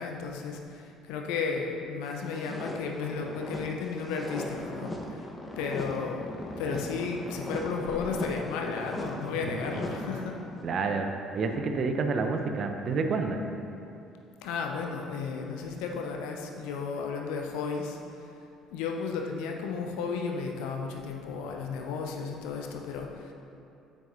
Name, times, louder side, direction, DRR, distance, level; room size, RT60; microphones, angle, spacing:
voice 1, 0.0-5.3 5.6-6.3 6.6-10.4 14.4-18.3 18.7-23.3, left 5 dB, 65° left, 2 dB, 0.7 m, -34 dB
sound 1, 2.1-10.7, left 1 dB, 20° left, 1.2 m, -38 dB
voice 2, 10.6-13.4, right 4 dB, 45° right, 5 dB, 0.7 m, -29 dB
8.9 x 8.7 x 2.7 m, 2.6 s
figure-of-eight pair, 50°, 0 cm